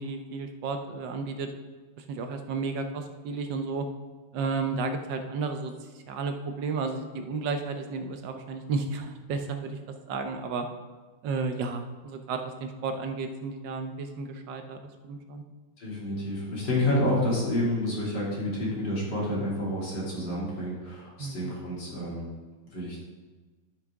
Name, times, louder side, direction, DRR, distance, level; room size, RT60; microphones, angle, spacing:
voice 1, 0.0-1.5 2.0-3.9 4.3-5.7 6.1-9.8 10.1-10.7 11.2-14.8 15.0-15.4 21.2-21.5, right 4 dB, 75° right, 6 dB, 1.4 m, -32 dB
voice 2, 15.8-22.3 22.7-23.0, left 1 dB, 65° left, -5 dB, 3.4 m, -29 dB
13.0 x 6.1 x 3.5 m, 1.3 s
omnidirectional pair, 2.0 m